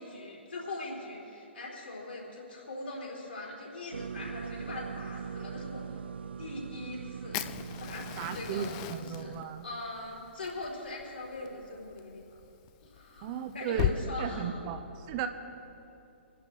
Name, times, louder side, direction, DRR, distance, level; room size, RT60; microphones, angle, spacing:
voice 1, 0.0-5.8 6.4-7.4 7.8-8.7 8.9-9.3 9.6-12.4 12.8-14.7, left 2 dB, 70° left, -5 dB, 3.9 m, -41 dB
sound 1, 3.9-9.4, right 6 dB, 65° right, 0.4 m, -41 dB
Fire, 7.3-14.0, left 13 dB, 30° left, 0.4 m, -38 dB
voice 2, 8.2-9.7 13.2-15.3, right 7 dB, 35° right, 8 dB, 0.7 m, -35 dB
28.0 x 11.0 x 3.1 m, 2.8 s
figure-of-eight pair, 120°, 6 cm